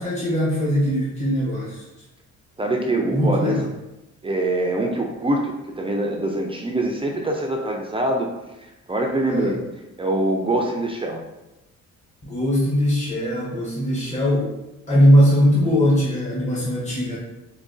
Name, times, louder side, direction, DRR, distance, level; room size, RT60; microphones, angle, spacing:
voice 1, 0.0-1.8 3.0-3.6 9.3-9.5 12.2-14.5 14.9-17.2, equal, 25° left, -7 dB, 1.3 m, -20 dB
voice 2, 2.6-3.6 4.2-8.3 8.9-9.6 10.0-11.2, right 1 dB, 20° right, 1 dB, 0.4 m, -24 dB
4.8 x 2.3 x 2.5 m, 0.97 s
cardioid pair, 90°, 30 cm